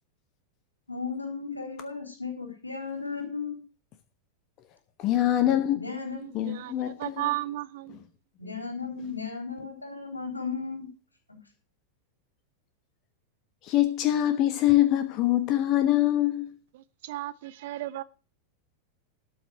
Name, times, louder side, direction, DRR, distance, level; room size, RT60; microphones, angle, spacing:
voice 1, 0.9-3.6 5.7-6.2 8.4-10.9 11.3-11.4, left 5 dB, 80° left, 3.7 m, -35 dB
voice 2, 5.0-5.9 6.3-7.3 13.6-16.5, left 13 dB, 40° left, 1.1 m, -24 dB
voice 3, 6.1-8.0 16.7-18.0, right 16 dB, 55° right, 0.7 m, -35 dB
12.5 x 6.3 x 6.5 m
figure-of-eight pair, 90°, 0 cm